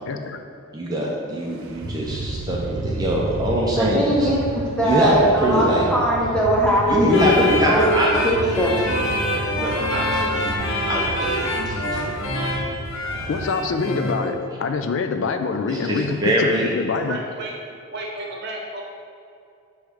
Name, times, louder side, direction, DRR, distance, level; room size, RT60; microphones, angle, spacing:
voice 1, 0.1-0.4 13.3-17.2, left 4 dB, 60° left, 7 dB, 0.3 m, -25 dB
voice 2, 0.7-4.3 4.8-5.9 6.9-8.6 8.9-9.2 9.5-10.5 10.9-12.1 13.1-13.4 15.7-16.7, right 1 dB, 20° right, -3 dB, 0.5 m, -24 dB
sound 1, 1.3-13.5, right 2 dB, 85° right, 0.5 m, -32 dB
voice 3, 3.8-8.7, equal, 5° left, -4 dB, 0.8 m, -20 dB
sound 2, 7.1-14.3, left 1 dB, 80° left, 1.0 m, -26 dB
voice 4, 17.1-17.5 17.9-18.8, right 2 dB, 50° right, -1 dB, 0.9 m, -32 dB
6.3 x 3.1 x 4.8 m, 2.5 s
head